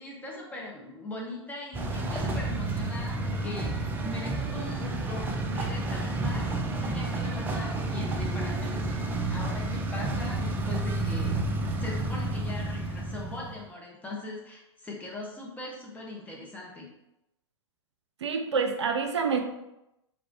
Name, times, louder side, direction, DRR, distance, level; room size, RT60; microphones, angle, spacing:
voice 1, 0.0-9.0 9.3-11.5 11.8-16.9, left 2 dB, 10° left, -3 dB, 1.0 m, -40 dB
sound 1, 1.7-13.6, right 2 dB, 15° right, 0.4 m, -30 dB
voice 2, 18.2-19.4, right 5 dB, 70° right, 5 dB, 0.5 m, -27 dB
3.4 x 3.3 x 3.7 m, 0.89 s
figure-of-eight pair, 105°, 15 cm